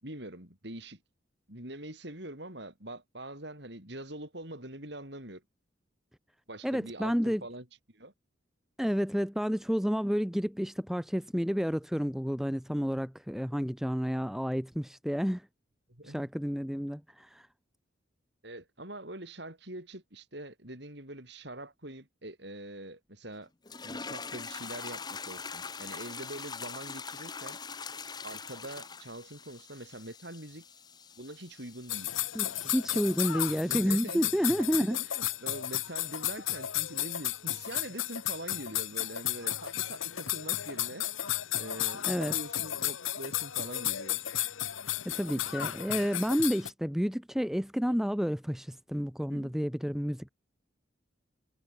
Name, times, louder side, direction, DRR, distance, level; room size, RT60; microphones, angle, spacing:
voice 1, 0.0-1.0 1.5-5.4 6.5-7.7 7.9-8.1 15.9-16.2 18.4-23.5 23.8-27.6 28.2-30.6 31.1-32.1 33.4-41.1 41.6-44.2 47.9-48.0 49.3-49.5, right 1 dB, 60° right, 6.2 m, -44 dB
voice 2, 6.6-7.4 8.8-15.4 16.0-17.4 32.3-35.0 42.1-42.3 45.0-50.3, equal, ahead, 0.9 m, -30 dB
sound 1, 23.7-33.8, left 5 dB, 20° left, 1.0 m, -43 dB
sound 2, 31.9-46.7, left 13 dB, 85° left, 1.1 m, -33 dB
head